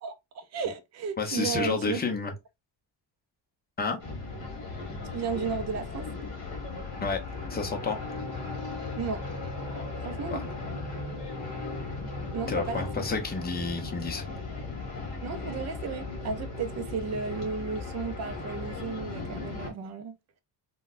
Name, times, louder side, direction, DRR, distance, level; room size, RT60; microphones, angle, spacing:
voice 1, 0.0-2.0 5.1-6.1 9.0-9.2 10.0-10.4 12.3-13.0 15.2-20.1, right 5 dB, 40° right, 0.4 m, -34 dB
voice 2, 1.2-2.3 3.8-4.0 7.0-7.2 7.5-8.0 10.3-10.4 12.5-14.2, left 4 dB, 20° left, 0.7 m, -30 dB
sound 1, 4.0-19.7, left 3 dB, 45° left, 1.6 m, -37 dB
3.9 x 2.2 x 2.4 m
cardioid pair, 160°, 44 cm